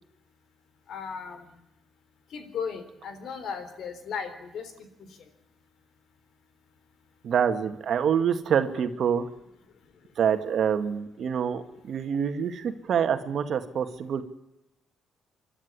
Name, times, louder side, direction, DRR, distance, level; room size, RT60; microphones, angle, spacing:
voice 1, 0.9-1.4 2.3-4.7, left 6 dB, 70° left, 9 dB, 3.8 m, -35 dB
voice 2, 7.2-9.3 10.2-14.2, right 7 dB, 65° right, 8 dB, 2.0 m, -26 dB
26.0 x 12.5 x 9.7 m, 0.93 s
cardioid pair, 90°, 0 cm